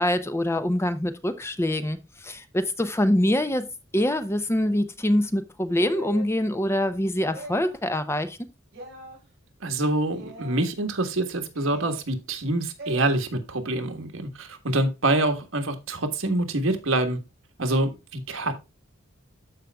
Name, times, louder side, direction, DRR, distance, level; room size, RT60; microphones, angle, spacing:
voice 1, 0.0-3.7 3.9-8.4, left 1 dB, 15° left, 0.6 m, -24 dB
sound 1, 5.7-6.3 7.2-7.8 8.7-9.2 10.1-10.6 11.5-12.0 12.8-13.1, equal, 55° right, 5.2 m, -41 dB
voice 2, 9.6-17.2 17.6-18.5, right 2 dB, 80° right, 1.5 m, -26 dB
13.5 x 5.1 x 2.3 m
head